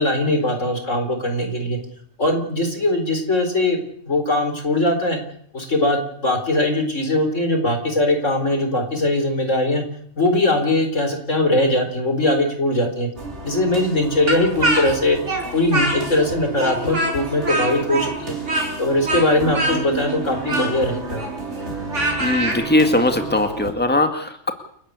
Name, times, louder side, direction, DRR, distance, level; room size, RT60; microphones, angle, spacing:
voice 1, 0.0-1.8 2.2-3.8 4.1-5.2 5.5-9.8 10.2-13.1 13.4-15.2 15.5-18.4 18.8-21.2, left 1 dB, 85° left, 6 dB, 4.6 m, -20 dB
sound 1, 13.2-23.7, right 3 dB, 60° right, 5.7 m, -32 dB
Speech, 14.3-16.3 16.6-22.6, right 1 dB, 80° right, 6.2 m, -24 dB
voice 2, 22.2-24.5, left 1 dB, 10° left, 6 dB, 2.1 m, -19 dB
29.5 x 11.5 x 8.4 m, 0.64 s
omnidirectional pair, 1.3 m